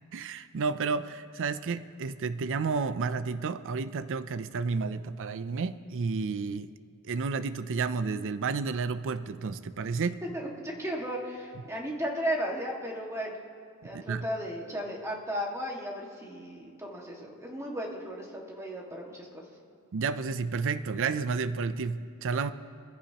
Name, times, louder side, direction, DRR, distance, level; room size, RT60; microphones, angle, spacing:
voice 1, 0.1-6.7 7.0-10.2 13.9-14.3 19.9-22.5, right 4 dB, 60° right, 13 dB, 0.5 m, -31 dB
voice 2, 10.2-13.3 13.8-19.4, equal, 15° right, -2 dB, 1.8 m, -35 dB
22.0 x 15.0 x 2.9 m, 2.2 s
head